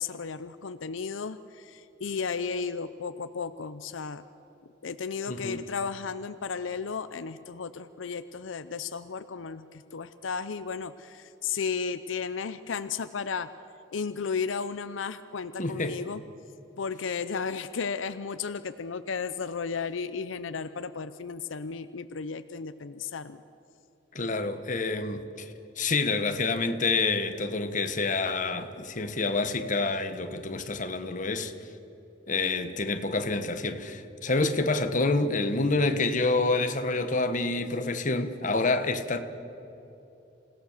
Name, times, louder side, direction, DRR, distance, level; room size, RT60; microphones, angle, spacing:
voice 1, 0.0-4.2 4.8-13.5 13.9-16.2 16.8-23.4, left 5 dB, 80° left, 0.6 m, -34 dB
voice 2, 5.3-5.6 15.6-16.0 24.1-25.5 25.8-31.5 32.3-39.2, left 3 dB, 40° left, 1.3 m, -28 dB
27.5 x 17.5 x 6.6 m
head